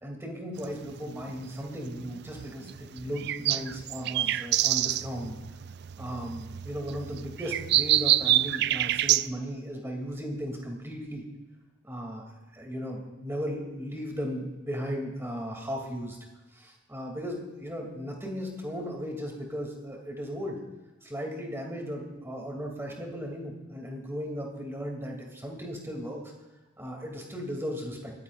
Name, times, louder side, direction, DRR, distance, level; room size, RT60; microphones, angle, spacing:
voice 1, 0.0-5.4 6.0-11.3 11.8-12.2 12.5-16.2 16.5-20.6 21.0-26.2 26.8-28.1, equal, 10° right, 0 dB, 2.6 m, -36 dB
sound 1, 0.6-9.3, right 13 dB, 50° right, 0.3 m, -27 dB
22.5 x 15.0 x 2.5 m, 1.2 s
head